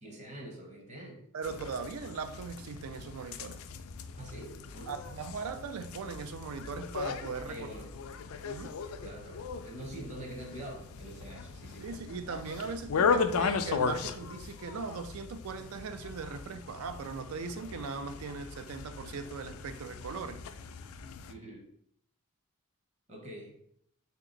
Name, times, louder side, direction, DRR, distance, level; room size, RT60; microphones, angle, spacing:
voice 1, 0.0-1.6 4.2-5.0 7.5-7.9 9.0-11.8 21.3-21.7 23.1-23.5, right 1 dB, 30° right, 0.9 m, -45 dB
voice 2, 1.3-3.6 4.9-7.6 8.4-8.8 11.8-20.4, right 5 dB, 75° right, 0.4 m, -39 dB
sound 1, 1.4-21.3, left 5 dB, 75° left, 0.3 m, -37 dB
3.3 x 2.9 x 3.8 m
head